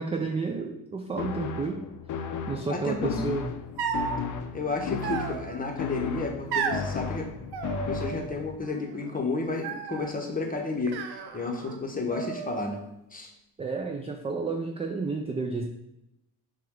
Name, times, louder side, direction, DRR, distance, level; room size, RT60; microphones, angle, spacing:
voice 1, 0.0-1.8 2.5-3.5 13.6-15.6, right 4 dB, 15° right, 3 dB, 0.3 m, -31 dB
sound 1, 1.2-8.6, left 6 dB, 50° left, 0.5 m, -35 dB
voice 2, 2.7-3.1 4.5-7.3 7.9-11.0 11.3-12.8 13.1-13.3, left 3 dB, 20° left, 2 dB, 0.9 m, -31 dB
sound 2, 3.8-4.2 5.0-5.7 6.5-6.9 7.5-8.3 8.6-9.2 9.6-10.2 10.9-11.8 12.1-12.8, right 6 dB, 65° right, 0.6 m, -33 dB
5.8 x 2.4 x 3.6 m, 0.85 s
cardioid pair, 95°, 41 cm